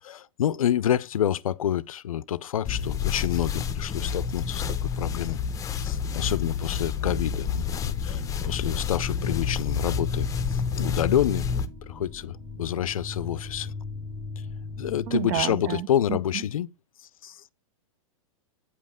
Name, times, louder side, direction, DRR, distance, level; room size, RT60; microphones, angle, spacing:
voice 1, 0.0-5.4 5.8-11.5 11.8-13.7 14.8-16.7 17.2-17.4, left 10 dB, 85° left, 0.4 m, -28 dB
sound 1, 2.7-11.7, left 6 dB, 20° left, 0.6 m, -29 dB
sound 2, 7.5-15.1, left 3 dB, ahead, 0.9 m, -39 dB
voice 2, 15.1-16.2, right 14 dB, 45° right, 0.5 m, -30 dB
8.5 x 5.4 x 3.6 m
hypercardioid pair, 115°, 17 cm